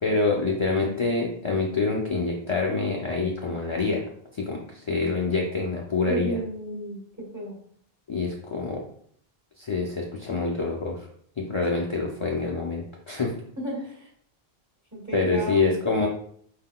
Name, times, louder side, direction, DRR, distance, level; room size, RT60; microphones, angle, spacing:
voice 1, 0.0-4.0 4.3-6.4 8.1-8.8 9.6-11.1 11.4-13.3 15.1-16.1, left 3 dB, 40° left, -2 dB, 0.5 m, -26 dB
voice 2, 6.0-7.0 7.3-7.6 13.6-14.1 15.0-15.7, right 1 dB, 15° right, -4 dB, 1.5 m, -33 dB
4.8 x 3.8 x 2.2 m, 0.63 s
omnidirectional pair, 1.0 m